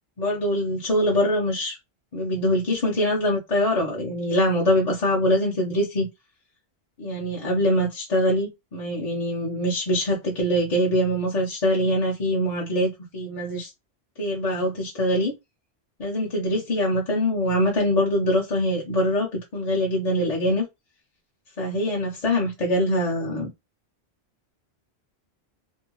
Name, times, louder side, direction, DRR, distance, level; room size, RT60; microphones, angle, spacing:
voice 1, 0.2-1.8 2.1-6.1 7.0-13.7 14.2-15.3 16.0-20.6 21.6-23.5, left 1 dB, 45° left, 0.6 m, -23 dB
2.6 x 2.2 x 2.9 m
omnidirectional pair, 1.1 m